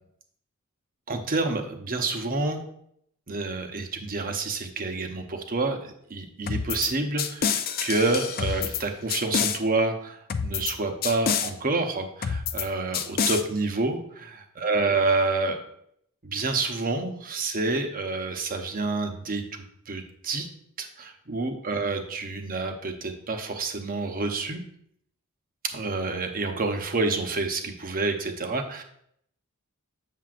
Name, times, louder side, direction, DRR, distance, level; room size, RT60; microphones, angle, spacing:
voice 1, 1.1-2.6 3.3-15.6 16.2-20.5 20.8-24.6 25.7-28.8, right 3 dB, 40° right, 5 dB, 0.8 m, -28 dB
sound 1, 6.5-6.9 7.2-8.8 9.1-9.6 10.3-10.7 11.0-11.5 12.2-12.7 12.9-13.4, left 7 dB, 45° left, 0.5 m, -27 dB
7.4 x 6.7 x 2.5 m, 0.70 s
head